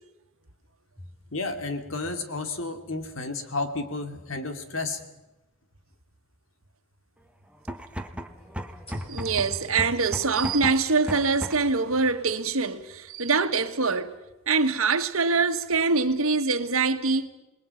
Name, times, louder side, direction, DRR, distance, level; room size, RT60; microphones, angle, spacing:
sound 1, 1.0-5.2 5.9-6.0 8.9-9.9, left 1 dB, 30° left, 5.5 m, -45 dB
voice 1, 1.3-5.0, left 3 dB, 65° left, 2.4 m, -32 dB
sound 2, 7.5-11.8, equal, 5° right, 1.2 m, -36 dB
voice 2, 9.1-14.2 14.5-17.3, right 4 dB, 80° right, 1.5 m, -24 dB
27.5 x 20.5 x 5.8 m
head